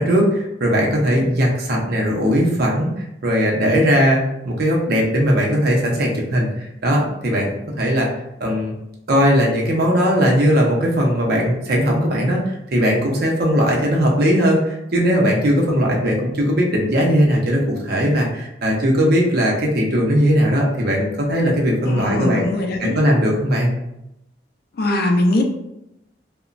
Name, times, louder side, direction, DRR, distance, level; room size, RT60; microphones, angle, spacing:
voice 1, 0.0-2.9 3.2-7.5 7.8-8.1 8.4-8.7 9.1-22.5 22.8-23.7, equal, 60° right, -1 dB, 0.6 m, -18 dB
voice 2, 21.8-23.0 24.8-25.4, left 1 dB, 60° left, 3 dB, 0.4 m, -21 dB
2.9 x 2.1 x 2.5 m, 0.86 s
head